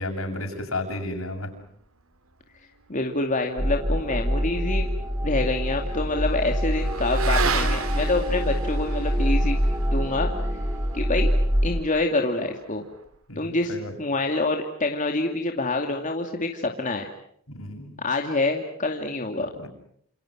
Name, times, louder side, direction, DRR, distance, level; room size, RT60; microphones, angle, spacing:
voice 1, 0.0-1.5 13.3-13.9 17.5-18.0 19.4-19.7, left 2 dB, 70° left, 4 dB, 7.4 m, -33 dB
voice 2, 2.9-4.9 5.2-9.6 9.9-10.3 10.9-11.3 11.6-12.8 13.4-17.1 18.0-19.5, left 2 dB, 35° left, 3 dB, 2.5 m, -26 dB
sound 1, 3.6-11.8, equal, 15° right, 2.1 m, -25 dB
Motorcycle / Accelerating revving vroom, 4.4-13.2, right 5 dB, 75° right, 2.9 m, -35 dB
29.0 x 28.5 x 6.2 m, 0.68 s
head